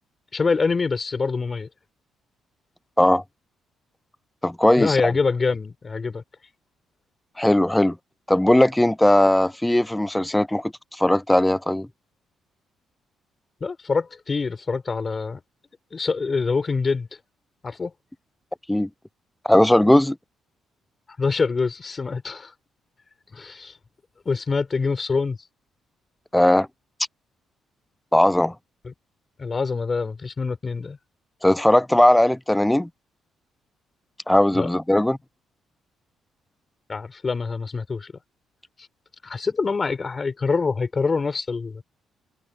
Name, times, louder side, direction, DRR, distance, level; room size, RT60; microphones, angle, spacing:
voice 1, 0.3-1.7 4.8-6.2 13.6-15.4 15.9-17.1 17.6-17.9 21.2-22.5 23.3-23.7 24.3-25.4 28.8-28.9 29.4-31.0 34.5-34.7 36.9-38.1 39.2-41.8, left 4 dB, 35° left, 4.2 m, -25 dB
voice 2, 4.4-5.1 7.4-8.0 8.3-11.9 18.7-18.9 19.4-20.2 26.3-26.7 28.1-28.5 31.4-32.9 34.3-35.2, left 1 dB, 5° left, 0.3 m, -18 dB
cardioid pair, 90°, 0 cm